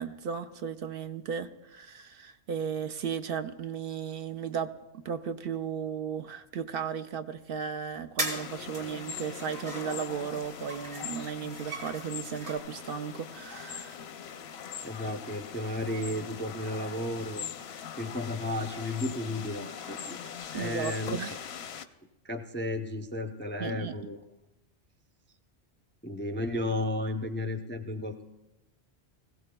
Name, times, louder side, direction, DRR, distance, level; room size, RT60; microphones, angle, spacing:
voice 1, 0.0-4.7 5.0-14.0 20.5-21.3 23.6-24.0, right 7 dB, 65° right, 9 dB, 0.8 m, -35 dB
sound 1, 8.2-21.9, left 8 dB, 85° left, 0.9 m, -42 dB
sound 2, 8.2-8.5 8.7-12.6, right 1 dB, 85° right, 2.9 m, -39 dB
voice 2, 14.8-17.5 18.0-21.2 22.2-24.2 26.0-28.2, left 1 dB, 15° left, 6 dB, 0.4 m, -33 dB
20.5 x 15.5 x 2.2 m, 1.0 s
omnidirectional pair, 1.1 m